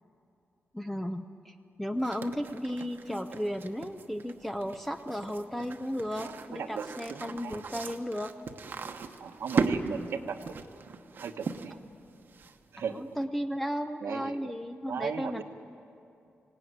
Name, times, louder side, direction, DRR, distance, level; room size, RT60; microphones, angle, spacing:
voice 1, 0.7-8.3 12.9-15.4, equal, 5° left, 7 dB, 0.6 m, -34 dB
sound 1, 2.0-12.8, right 5 dB, 50° right, 1.1 m, -38 dB
voice 2, 6.2-7.6 9.2-10.6 11.1-11.8 12.7-13.0 14.0-14.5 14.9-15.4, right 6 dB, 75° right, 7 dB, 1.2 m, -37 dB
25.0 x 18.5 x 9.5 m, 2.6 s
wide cardioid pair, 175°, 4 cm